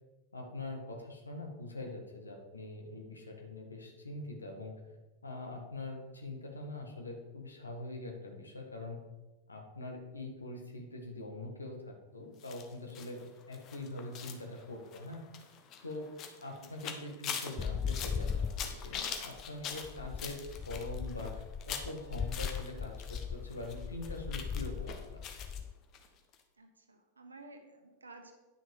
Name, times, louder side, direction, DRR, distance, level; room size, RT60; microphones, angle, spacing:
voice 1, 0.3-4.7 5.2-9.0 9.5-13.2 13.5-15.2 15.8-16.1 16.4-18.5 18.8-21.3 21.6-25.2, left 2 dB, 80° left, 2 dB, 1.8 m, -43 dB
sound 1, 12.4-23.2 23.5-25.6 25.9-26.1 26.3-26.4, left 7 dB, 35° left, 1.1 m, -43 dB
sound 2, 17.6-25.7, left 6 dB, 15° left, 0.3 m, -39 dB
voice 2, 26.6-28.3, right 2 dB, 75° right, 6 dB, 1.3 m, -53 dB
9.9 x 6.2 x 5.1 m, 1.1 s
figure-of-eight pair, 90°, 0 cm